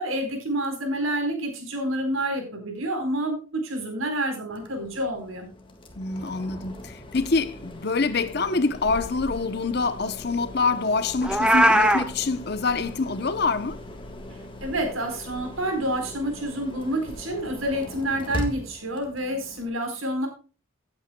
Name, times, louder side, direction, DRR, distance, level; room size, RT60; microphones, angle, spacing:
voice 1, 0.0-5.5 14.6-20.3, right 1 dB, 80° right, 4.2 m, -28 dB
sound 1, 4.5-19.7, left 1 dB, 25° left, 1.7 m, -40 dB
voice 2, 6.0-13.8, left 4 dB, 50° left, 0.8 m, -26 dB
Meow, 11.2-12.0, equal, 5° right, 0.9 m, -18 dB
17.0 x 8.8 x 2.2 m
head